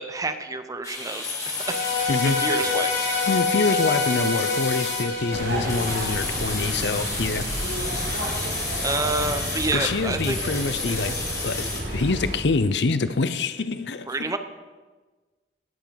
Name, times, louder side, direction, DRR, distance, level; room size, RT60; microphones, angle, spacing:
voice 1, 0.0-3.1 8.8-10.5 14.1-14.4, right 3 dB, 20° right, 9 dB, 0.7 m, -29 dB
sound 1, 0.8-11.8, left 3 dB, 20° left, 2.3 m, -31 dB
sound 2, 1.5-6.8, left 4 dB, 85° left, 4.1 m, -27 dB
voice 2, 2.1-2.8 3.3-7.5 9.7-11.1 11.4-14.3, left 3 dB, 70° left, 13 dB, 0.7 m, -26 dB
sound 3, 5.3-12.3, right 1 dB, 80° right, 4.2 m, -31 dB
17.0 x 5.9 x 6.9 m, 1.3 s
head